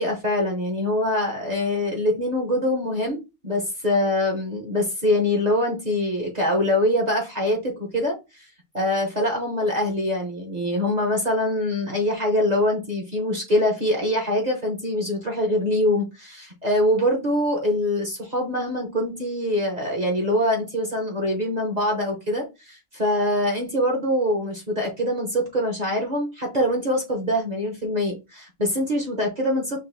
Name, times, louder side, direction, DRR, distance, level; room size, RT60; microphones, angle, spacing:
voice 1, 0.0-8.5 8.7-29.8, left 1 dB, 35° right, 0.7 m, -24 dB
6.0 x 2.5 x 2.6 m
omnidirectional pair, 1.6 m